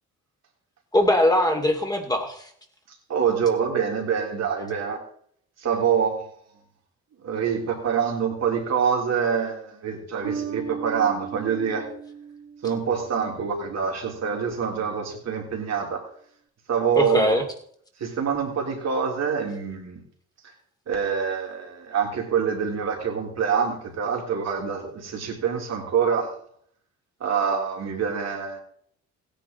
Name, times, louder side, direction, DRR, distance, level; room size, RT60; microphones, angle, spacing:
voice 1, 0.9-2.5 17.0-17.4, left 1 dB, 15° left, 3 dB, 2.6 m, -21 dB
voice 2, 3.1-5.0 5.6-6.3 7.2-11.9 12.6-16.0 16.7-17.4 18.0-20.0 20.9-26.3 27.2-28.6, right 7 dB, 60° right, 1 dB, 3.6 m, -25 dB
Bass guitar, 10.2-13.3, right 6 dB, 80° right, 3.6 m, -36 dB
16.0 x 10.0 x 4.0 m, 0.62 s
cardioid pair, 90°, 30 cm